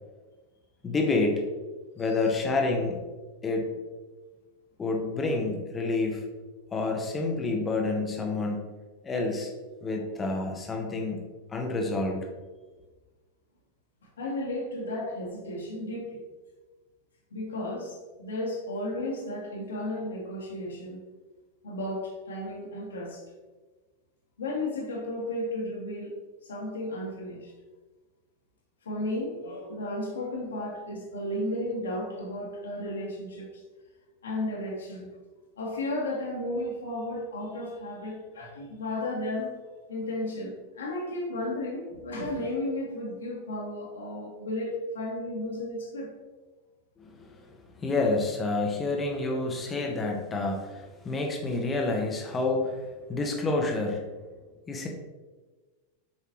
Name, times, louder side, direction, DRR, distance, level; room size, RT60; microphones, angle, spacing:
voice 1, 0.8-1.5 2.0-3.0 3.4-3.7 4.8-6.3 6.7-8.7 9.0-9.5 9.8-12.3 47.0-54.1 54.7-54.9, left 3 dB, 20° left, 1 dB, 1.1 m, -29 dB
voice 2, 14.2-16.2 17.3-21.0 21.6-23.2 24.4-26.1 26.4-27.5 28.8-33.5 34.2-35.1 35.6-39.5 39.9-46.1, left 1 dB, 70° left, -3 dB, 1.7 m, -33 dB
8.2 x 5.6 x 3.0 m, 1.3 s
figure-of-eight pair, 90°, 0 cm